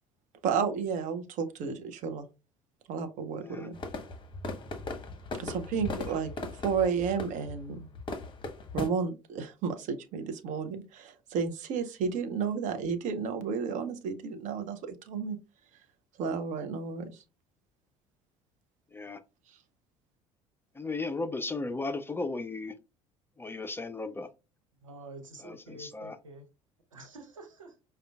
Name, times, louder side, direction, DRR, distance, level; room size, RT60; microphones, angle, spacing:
voice 1, 0.4-2.2 2.9-3.8 5.4-6.3 6.6-7.9 8.7-15.4 16.2-17.1, right 6 dB, 50° right, 0.6 m, -32 dB
voice 2, 3.4-3.7 6.1-6.2 18.9-19.2 20.7-22.8 23.4-24.3 25.4-26.2, left 3 dB, 15° left, 0.4 m, -36 dB
sound 1, 3.7-8.9, left 3 dB, 30° left, 0.8 m, -38 dB
voice 3, 24.8-26.5 26.9-27.8, right 2 dB, 85° right, 0.8 m, -47 dB
4.9 x 2.2 x 2.3 m
figure-of-eight pair, 60°, 16 cm